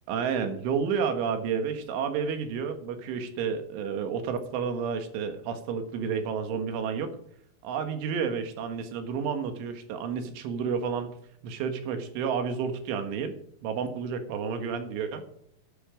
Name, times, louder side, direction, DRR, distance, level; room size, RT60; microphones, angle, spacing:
voice 1, 0.1-7.1 7.6-11.1 11.4-13.3 13.6-15.2, right 6 dB, 90° right, 7 dB, 4.1 m, -30 dB
13.5 x 11.0 x 5.1 m, 0.66 s
omnidirectional pair, 5.3 m